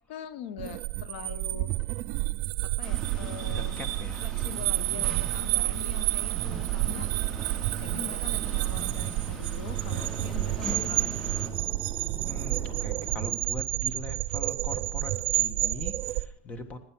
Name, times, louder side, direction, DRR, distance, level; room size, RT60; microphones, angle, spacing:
voice 1, 0.1-1.7 2.6-3.9 4.2-7.1 7.8-11.4, left 9 dB, 80° left, 14 dB, 0.9 m, -43 dB
sound 1, 0.6-16.3, right 19 dB, 55° right, 0.5 m, -30 dB
sound 2, 2.8-11.5, right 1 dB, 5° left, 2.8 m, -42 dB
voice 2, 3.5-4.3 5.4-5.9 12.2-16.8, left 2 dB, 25° left, 9 dB, 1.6 m, -41 dB
sound 3, 4.1-13.3, right 5 dB, 25° right, 4.7 m, -41 dB
18.5 x 9.5 x 6.1 m, 0.68 s
supercardioid pair, 155°, 6 cm